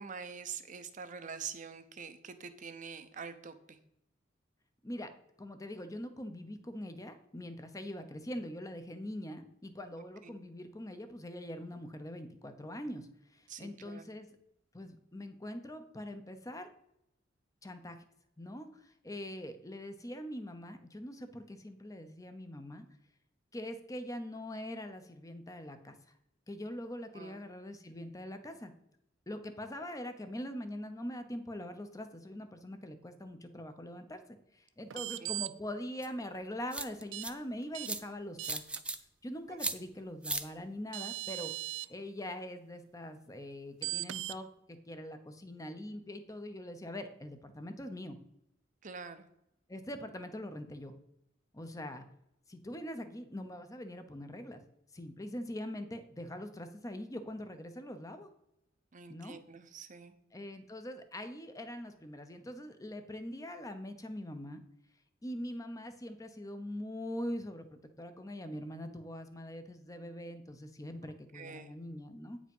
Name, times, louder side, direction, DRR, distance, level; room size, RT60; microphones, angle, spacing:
voice 1, 0.0-3.8 10.2-10.5 13.5-14.1 27.1-27.4 34.9-35.4 39.5-39.6 48.8-49.3 58.9-60.1 71.3-71.7, right 6 dB, 45° right, 10 dB, 0.7 m, -46 dB
voice 2, 5.4-14.4 14.7-16.7 17.6-18.0 18.4-22.8 23.5-25.9 26.5-28.7 29.3-34.2 34.5-38.6 39.2-41.5 41.9-48.2 49.7-50.9 51.5-52.1 52.5-54.6 54.9-58.3 59.1-59.4 60.3-64.6 65.2-72.4, left 1 dB, 20° left, 8 dB, 0.8 m, -43 dB
sound 1, 34.9-35.5 37.1-37.3 37.7-37.9 38.4-38.8 40.5-40.6 40.9-41.9 43.8-44.4, right 16 dB, 75° right, 0.4 m, -38 dB
sound 2, 36.0-36.1 36.7-37.3 37.8-38.0 38.4-39.0 39.6-39.7 40.2-40.4, right 2 dB, 5° right, 0.4 m, -35 dB
8.9 x 5.1 x 5.4 m, 0.79 s
head